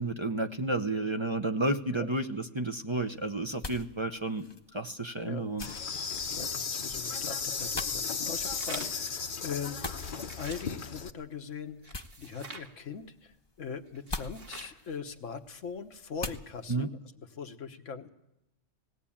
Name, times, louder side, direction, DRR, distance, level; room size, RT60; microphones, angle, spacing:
voice 1, 0.0-4.4 4.7-5.6 16.7-16.9, right 2 dB, 25° right, 5 dB, 0.8 m, -31 dB
sound 1, 2.9-16.7, left 2 dB, 20° left, 1.0 m, -46 dB
Insect, 5.6-11.1, left 5 dB, 45° left, 1.0 m, -35 dB
voice 2, 6.3-10.1 10.4-18.1, left 6 dB, 85° left, 7 dB, 1.5 m, -41 dB
sound 2, 8.2-9.1 9.8-10.7 11.8-12.7 14.0-14.8, right 2 dB, 50° right, 2.1 m, -46 dB
19.5 x 17.0 x 8.7 m, 0.89 s
omnidirectional pair, 1.3 m